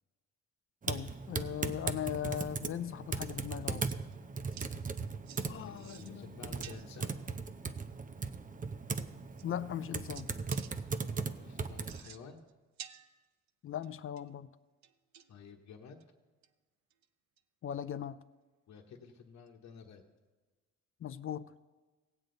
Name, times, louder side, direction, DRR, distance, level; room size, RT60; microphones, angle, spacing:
Typing, 0.8-12.0, right 4 dB, 25° right, 0.7 m, -38 dB
voice 1, 0.9-3.9 5.5-6.3 9.4-10.3 13.6-14.5 17.6-18.2 21.0-21.5, left 10 dB, 45° left, 15 dB, 0.5 m, -39 dB
sound 1, 3.4-3.5 3.9-4.2 4.5-4.7 5.3-5.5 5.8-6.2 6.6-7.0 8.3-8.4 8.9-9.0 9.4-9.9 10.1-10.7 11.8-12.5 12.8-13.5 13.8-14.3 14.8-15.4 16.0-16.1 16.4-16.5 16.9-17.1 17.4-17.5 19.5-19.6, right 9 dB, 65° right, 0.7 m, -51 dB
voice 2, 5.6-7.2 11.4-12.5 15.3-16.0 18.7-20.1, left 6 dB, 65° left, 2 dB, 1.1 m, -51 dB
17.5 x 7.8 x 3.9 m, 1.3 s
cardioid pair, 90°, 30 cm